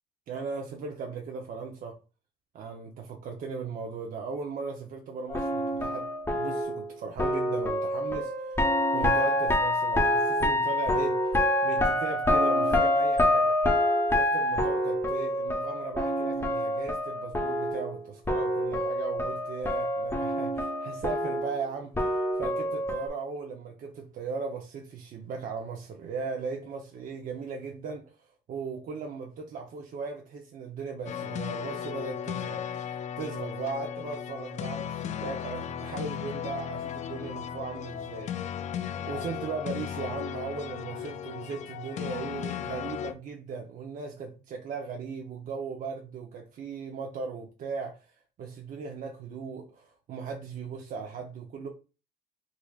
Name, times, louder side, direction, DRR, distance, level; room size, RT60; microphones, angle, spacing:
voice 1, 0.3-2.0 2.5-13.7 14.1-38.5 39.0-51.7, right 5 dB, 55° right, 0.7 m, -38 dB
sound 1, 5.3-18.0 18.3-23.1, left 1 dB, 15° left, 0.8 m, -27 dB
sound 2, 31.1-43.1, left 9 dB, 45° left, 0.4 m, -36 dB
3.8 x 3.2 x 2.3 m
cardioid pair, 110°, 17 cm